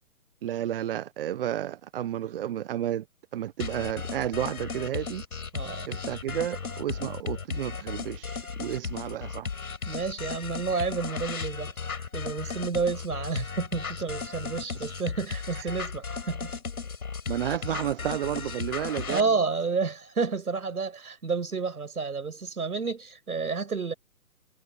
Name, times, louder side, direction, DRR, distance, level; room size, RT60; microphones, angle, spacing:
voice 1, 0.4-3.0 3.3-5.2 5.9-9.5 15.6-15.7 17.3-19.3, right 11 dB, 35° right, 1.3 m, -31 dB
sound 1, 3.6-19.2, left 5 dB, 65° left, 6.0 m, -35 dB
voice 2, 5.5-5.9 9.9-11.7 12.1-16.5 19.1-23.9, right 4 dB, 70° right, 7.4 m, -30 dB
figure-of-eight pair, 135°, 46 cm